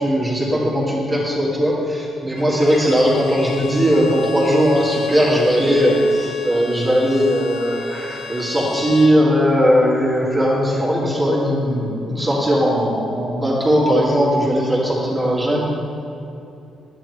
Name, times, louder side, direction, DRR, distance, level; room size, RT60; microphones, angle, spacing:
voice 1, 0.0-15.6, equal, 20° right, -6 dB, 2.1 m, -18 dB
Bowed string instrument, 2.4-9.2, left 5 dB, 80° left, 0.6 m, -34 dB
10.0 x 8.5 x 3.2 m, 2.7 s
cardioid pair, 90°, 0 cm